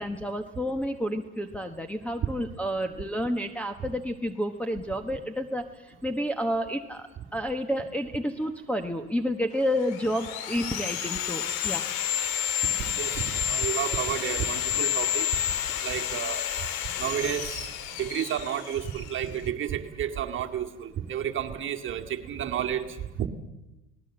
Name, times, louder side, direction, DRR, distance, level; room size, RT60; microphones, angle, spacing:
voice 1, 0.0-11.8, equal, 5° left, 2 dB, 1.1 m, -30 dB
Sawing, 9.6-19.5, left 10 dB, 75° left, 2.0 m, -30 dB
voice 2, 12.8-15.3 15.8-16.5 17.0-17.7 18.0-23.3, right 9 dB, 35° right, 3 dB, 2.2 m, -31 dB
29.5 x 19.0 x 7.8 m, 1.0 s
supercardioid pair, 125°, 34 cm